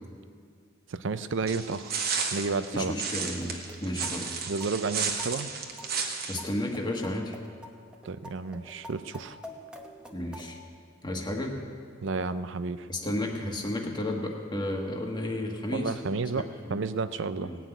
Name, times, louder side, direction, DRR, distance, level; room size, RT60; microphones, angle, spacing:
voice 1, 0.9-3.0 4.5-5.5 8.0-9.4 12.0-12.9 15.7-17.5, right 4 dB, 70° right, 12 dB, 0.6 m, -31 dB
sound 1, 1.5-6.4, right 6 dB, 50° right, 1.3 m, -33 dB
voice 2, 2.7-4.4 6.3-7.4 10.1-10.6 11.0-11.6 12.9-16.0 16.3-16.8 17.4-17.6, left 1 dB, 25° left, 1 dB, 1.5 m, -32 dB
sound 2, 3.2-10.6, equal, 5° right, 1.0 m, -48 dB
17.5 x 5.9 x 9.1 m, 2.2 s
head